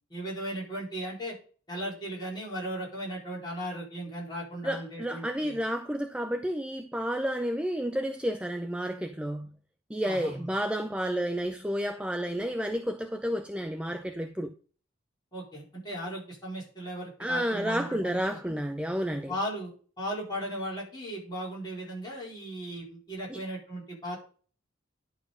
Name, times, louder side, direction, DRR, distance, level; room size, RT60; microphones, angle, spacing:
voice 1, 0.0-1.3 1.7-5.6 10.0-10.5 15.3-18.6 19.3-24.2, equal, 20° left, 4.6 m, -37 dB
voice 2, 4.6-9.5 9.9-14.5 17.2-19.3 23.3-23.4, equal, 5° right, 0.4 m, -31 dB
11.0 x 4.5 x 5.4 m
head